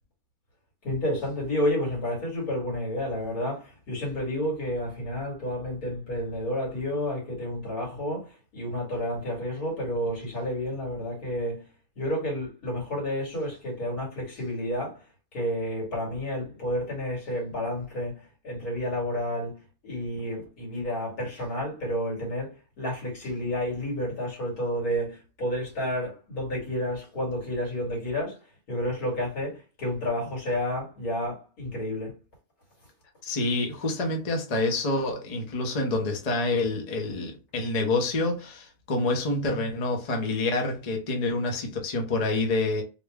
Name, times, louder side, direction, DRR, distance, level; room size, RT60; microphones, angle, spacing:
voice 1, 0.8-11.7 12.0-15.0 15.3-28.4 28.7-32.2, equal, 80° left, 2.6 m, -30 dB
voice 2, 33.2-42.8, left 2 dB, 35° left, 0.7 m, -27 dB
4.1 x 2.2 x 3.5 m
omnidirectional pair, 1.6 m